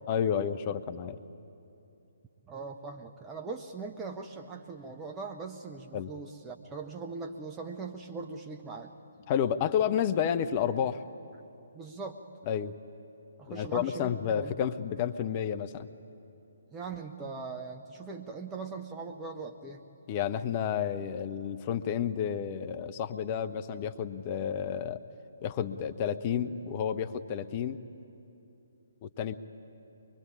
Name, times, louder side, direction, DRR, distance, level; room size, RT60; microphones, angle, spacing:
voice 1, 0.1-1.2 5.9-6.1 9.3-11.0 12.5-12.7 13.5-15.9 20.1-25.0 25.4-27.8 29.0-29.3, left 8 dB, 30° left, 11 dB, 0.8 m, -30 dB
voice 2, 2.5-8.9 11.7-12.2 13.4-14.7 16.7-19.8, right 4 dB, 10° right, 1 dB, 0.9 m, -40 dB
23.0 x 23.0 x 9.7 m, 2.8 s
figure-of-eight pair, 135°, 0 cm